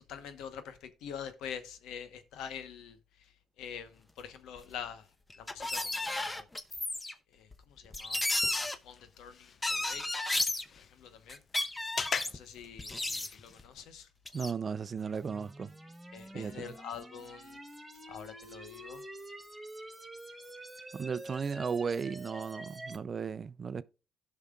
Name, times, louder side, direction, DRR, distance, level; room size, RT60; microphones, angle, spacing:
voice 1, 0.1-3.0 3.6-3.9 4.2-5.0 5.5-6.5 7.4-7.5 7.8-8.5 8.8-10.0 10.8-11.4 12.3-14.1 16.1-17.6 18.1-19.0, left 7 dB, 90° left, 1.0 m, -45 dB
sound 1, 4.6-4.7 5.3-7.1 7.5-7.6 7.8-8.7 9.6-10.6 11.3-12.4 12.8-13.6 14.3-14.5, left 2 dB, 20° left, 0.8 m, -33 dB
sound 2, 8.0-13.7, left 6 dB, 50° left, 0.4 m, -43 dB
voice 2, 14.3-15.7 16.3-16.8 20.9-23.8, right 6 dB, 45° right, 0.5 m, -35 dB
sound 3, 15.0-23.0, right 1 dB, 10° right, 2.3 m, -47 dB
16.5 x 5.6 x 2.3 m
cardioid pair, 90°, 0 cm